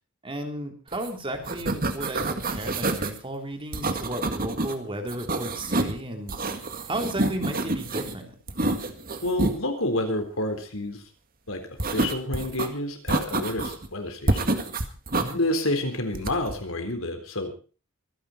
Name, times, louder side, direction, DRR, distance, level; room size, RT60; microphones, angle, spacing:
voice 1, 0.2-8.4 15.2-15.4, right 1 dB, 25° right, 4 dB, 3.5 m, -34 dB
sound 1, 0.9-1.1 1.3-3.2 3.7-4.7 5.1-6.0 6.3-8.1 8.5-9.6 11.8-12.7 13.1-13.9 14.3-15.3 16.1-16.6, right 2 dB, 45° right, 1.9 m, -27 dB
voice 2, 9.2-11.0 11.5-11.6 11.9-14.5 15.3-17.6, left 1 dB, 80° left, 6 dB, 4.0 m, -29 dB
24.5 x 10.5 x 4.3 m, 0.37 s
head